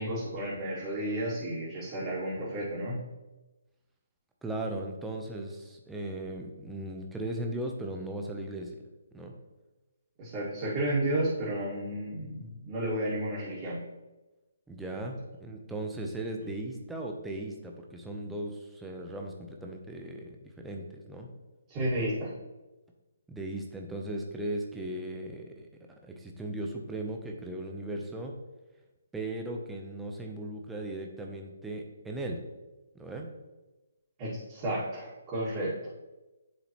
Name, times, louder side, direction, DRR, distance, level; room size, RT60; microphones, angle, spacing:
voice 1, 0.0-3.0 10.2-13.8 21.7-22.3 34.2-35.7, right 1 dB, 25° right, -10 dB, 2.1 m, -32 dB
voice 2, 4.4-8.7 9.1-9.3 14.7-21.3 23.3-25.7 26.0-28.3 29.1-32.4 32.9-33.3, right 1 dB, 5° right, 1 dB, 0.8 m, -37 dB
10.0 x 3.9 x 3.1 m, 1.1 s
figure-of-eight pair, 140°, 0 cm